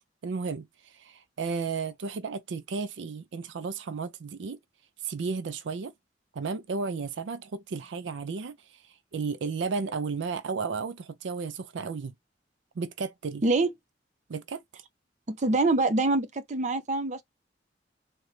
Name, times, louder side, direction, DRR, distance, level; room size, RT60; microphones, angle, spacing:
voice 1, 0.2-4.6 5.0-5.9 6.3-12.1 12.8-13.4 14.3-14.6, right 4 dB, 85° right, 0.4 m, -33 dB
voice 2, 15.3-17.2, right 2 dB, 40° right, 0.6 m, -25 dB
3.8 x 2.2 x 3.2 m
head